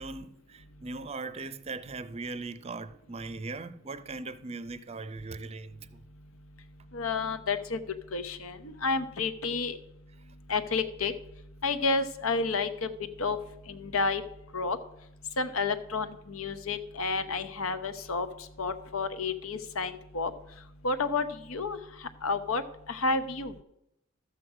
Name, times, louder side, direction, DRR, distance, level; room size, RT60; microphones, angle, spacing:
voice 1, 0.0-5.9, right 3 dB, 30° right, 0.5 m, -39 dB
voice 2, 6.9-7.8 8.1-8.6 8.8-9.8 10.5-11.1 11.6-12.9 13.2-13.4 13.7-14.2 14.5-14.8 15.4-18.3 18.6-20.3 20.8-21.8 22.2-22.6 22.9-23.6, left 4 dB, 85° left, 0.9 m, -30 dB
13.0 x 7.8 x 4.9 m
head